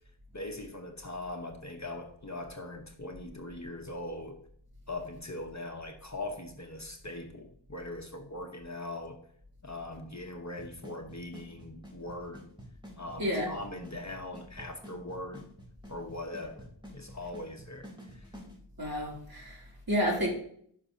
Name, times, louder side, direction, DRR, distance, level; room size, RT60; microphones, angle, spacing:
voice 1, 0.3-4.3 4.9-9.2 9.6-12.4 13.0-15.4 15.9-18.3, left 2 dB, 35° left, 3 dB, 1.1 m, -41 dB
Drum kit / Snare drum / Bass drum, 10.6-18.5, equal, 10° right, 3.4 m, -48 dB
voice 2, 13.2-13.5 18.8-20.3, equal, 45° right, -3 dB, 3.1 m, -30 dB
9.6 x 6.1 x 2.8 m, 0.63 s
wide cardioid pair, 40°, 49 cm